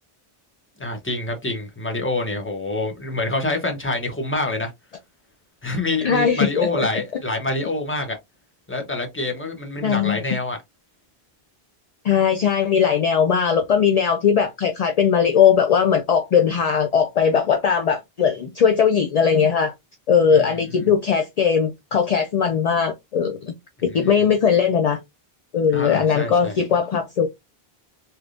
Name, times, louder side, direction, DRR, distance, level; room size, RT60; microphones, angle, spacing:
voice 1, 0.8-4.7 5.6-8.2 8.7-10.6 20.8-20.9 25.7-26.6, left 2 dB, 15° left, 0.8 m, -26 dB
voice 2, 6.0-6.9 9.8-10.2 12.0-19.7 20.1-23.5 23.8-25.0 25.5-27.3, left 7 dB, 55° left, 0.4 m, -19 dB
3.4 x 2.8 x 2.4 m
omnidirectional pair, 1.1 m